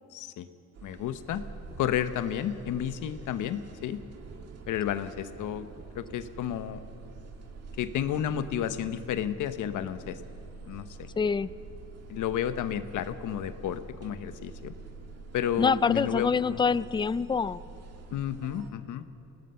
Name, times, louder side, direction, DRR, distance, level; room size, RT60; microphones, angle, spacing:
voice 1, 0.1-0.5 0.8-1.4 1.8-4.0 4.7-5.7 5.9-6.8 7.8-10.2 10.7-11.1 12.1-14.7 15.3-16.6 18.1-19.0, left 10 dB, 80° left, 11 dB, 1.0 m, -31 dB
sound 1, 0.7-18.7, right 4 dB, 55° right, 2.0 m, -46 dB
voice 2, 11.2-11.5 15.6-17.6, left 5 dB, 15° left, 18 dB, 0.4 m, -26 dB
26.0 x 18.5 x 5.7 m, 2.8 s
cardioid pair, 90°, 30 cm